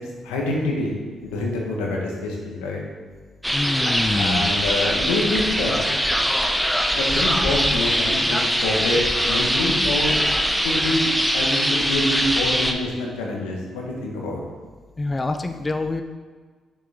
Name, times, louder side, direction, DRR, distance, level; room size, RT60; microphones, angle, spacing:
voice 1, 0.2-1.0 1.2-2.8 4.1-5.8 6.9-10.2 10.6-14.4, left 1 dB, 90° left, -1 dB, 1.3 m, -26 dB
sound 1, 3.4-12.7, equal, ahead, 0.8 m, -22 dB
voice 2, 3.5-4.5 15.0-16.0, left 2 dB, 25° left, 7 dB, 0.5 m, -26 dB
6.7 x 6.2 x 3.6 m, 1.5 s
supercardioid pair, 55°, 0 cm